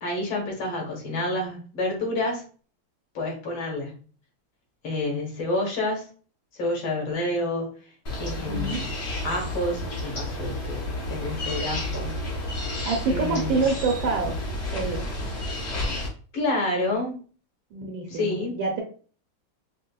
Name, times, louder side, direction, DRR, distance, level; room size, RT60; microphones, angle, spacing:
voice 1, 0.0-2.4 3.2-3.9 4.8-6.1 6.6-7.7 8.2-8.8 9.2-12.2 13.1-13.6 16.3-17.2 18.1-18.5, left 1 dB, 75° left, 0 dB, 1.9 m, -28 dB
sound 1, 8.1-16.1, left 1 dB, 50° left, 0.9 m, -31 dB
voice 2, 8.3-8.8 12.8-14.4 14.7-15.1 17.7-18.8, right 4 dB, 75° right, 0 dB, 1.5 m, -27 dB
5.0 x 2.1 x 2.2 m, 0.39 s
omnidirectional pair, 2.1 m